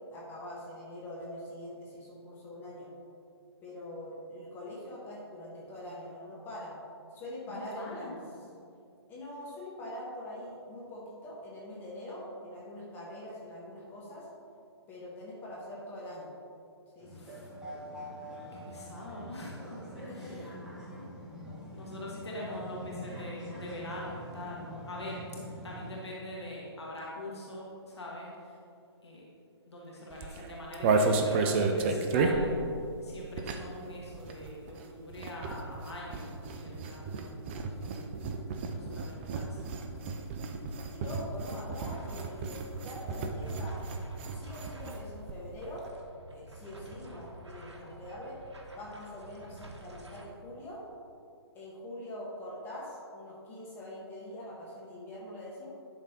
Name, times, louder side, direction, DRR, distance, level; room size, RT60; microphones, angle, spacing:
voice 1, 0.1-2.9 3.6-6.7 7.1-8.2 9.1-14.3 14.9-16.3 17.0-17.4 19.9-20.5 22.0-22.6 40.9-43.8 44.3-45.8 46.3-48.4 48.7-50.8 51.5-55.7, left 1 dB, 15° left, -6 dB, 1.2 m, -43 dB
voice 2, 7.5-8.3 17.1-17.5 18.5-20.5 21.4-25.2 25.6-28.6 29.0-29.2 29.7-32.6 33.0-38.2 38.7-39.9, left 1 dB, 75° left, -4 dB, 1.5 m, -43 dB
sound 1, 17.0-26.0, equal, 5° right, 1.0 m, -44 dB
sound 2, 30.1-33.8 34.1-45.0 45.3-45.4 45.6-45.9, right 3 dB, 25° right, 0.5 m, -32 dB
sound 3, 41.9-50.3, right 1 dB, 80° right, 1.1 m, -50 dB
11.0 x 3.8 x 4.1 m, 2.6 s
figure-of-eight pair, 135°, 14 cm